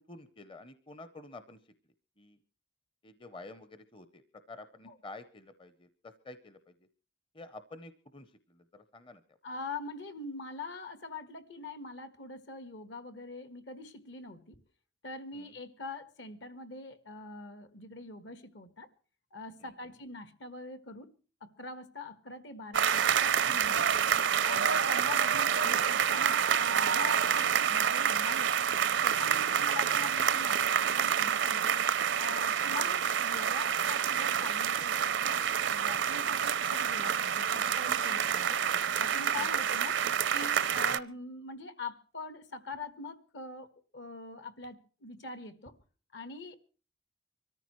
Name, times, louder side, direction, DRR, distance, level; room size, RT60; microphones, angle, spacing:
voice 1, 0.1-1.6 2.2-2.4 3.0-4.2 4.5-6.7 7.3-9.2 15.3-15.5 29.3-29.6 32.6-32.8 39.4-39.6, left 2 dB, 25° left, 0.7 m, -50 dB
voice 2, 9.4-14.6 15.0-18.9 19.3-21.1 21.4-24.1 24.4-28.6 29.0-31.8 32.2-38.6 39.0-40.0 40.3-45.7 46.1-46.6, left 3 dB, 65° left, 1.4 m, -44 dB
sound 1, 22.7-41.0, right 8 dB, 70° right, 0.6 m, -28 dB
24.5 x 14.0 x 3.1 m
head